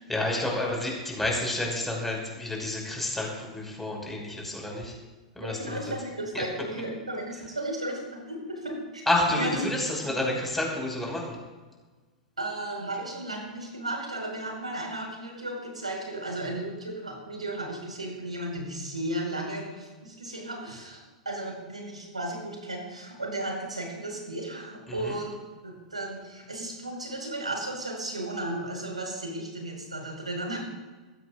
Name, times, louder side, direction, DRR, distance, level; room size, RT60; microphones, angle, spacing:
voice 1, 0.1-4.9 5.4-5.9 6.3-6.4 9.1-11.4 25.0-25.2, left 1 dB, 5° left, -1 dB, 5.7 m, -29 dB
voice 2, 5.4-9.0 9.4-9.6 10.0-10.1 12.4-21.0 21.3-25.4 25.6-30.6, right 1 dB, 85° right, 0 dB, 5.2 m, -34 dB
22.0 x 16.0 x 2.6 m, 1.3 s
figure-of-eight pair, 95°, 4 cm